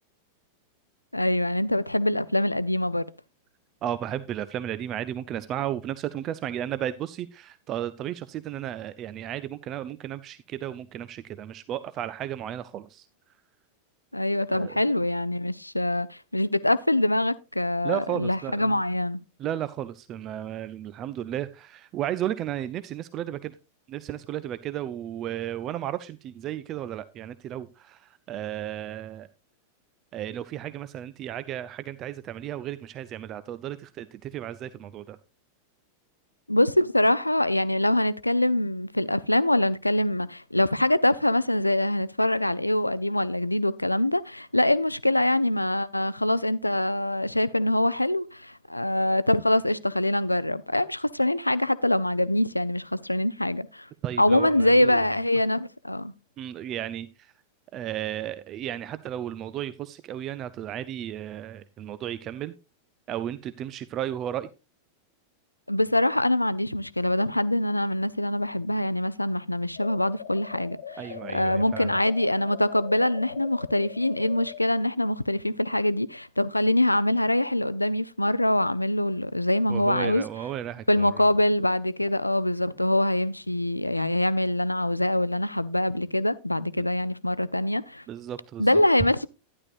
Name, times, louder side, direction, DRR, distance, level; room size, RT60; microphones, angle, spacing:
voice 1, 1.1-3.0 14.1-19.2 36.5-53.9 54.2-56.1 65.7-71.0 71.3-80.2 80.9-88.0 88.6-89.3, left 1 dB, 85° left, 0.4 m, -24 dB
voice 2, 3.8-13.1 14.5-14.8 17.8-18.8 19.4-23.5 23.9-29.3 30.1-35.2 54.0-55.0 56.4-57.3 57.7-62.5 63.1-64.5 71.0-72.0 79.7-81.2 86.8-86.9 88.1-88.7, right 11 dB, 35° right, 0.5 m, -34 dB
sound 1, 69.7-74.6, left 8 dB, 60° left, 1.3 m, -41 dB
12.0 x 10.5 x 2.4 m
figure-of-eight pair, 90°, 0 cm